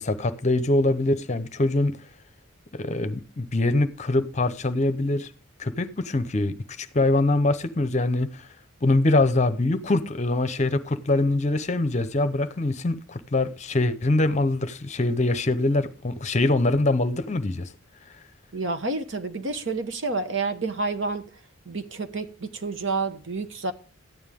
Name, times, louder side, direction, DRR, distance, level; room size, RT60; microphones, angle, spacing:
voice 1, 0.0-2.0 2.7-5.3 5.6-8.5 8.8-17.7, left 2 dB, 35° left, 0.7 m, -23 dB
voice 2, 18.5-21.2 21.6-23.7, right 3 dB, 60° right, 1.1 m, -29 dB
13.5 x 9.5 x 3.6 m
head